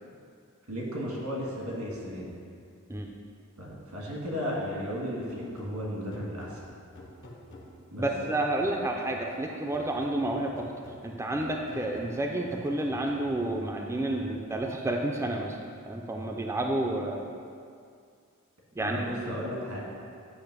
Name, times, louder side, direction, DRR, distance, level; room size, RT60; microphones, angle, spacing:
voice 1, 0.7-2.3 3.6-6.6 7.9-8.1 18.8-19.8, equal, 90° right, -3 dB, 1.8 m, -34 dB
sound 1, 5.3-9.2 9.7-13.6, left 1 dB, 60° left, 0.9 m, -48 dB
voice 2, 8.0-10.7 11.0-15.6 15.9-17.2 18.8-19.1, right 1 dB, 15° right, 1 dB, 0.4 m, -30 dB
8.5 x 2.9 x 5.9 m, 2.3 s
head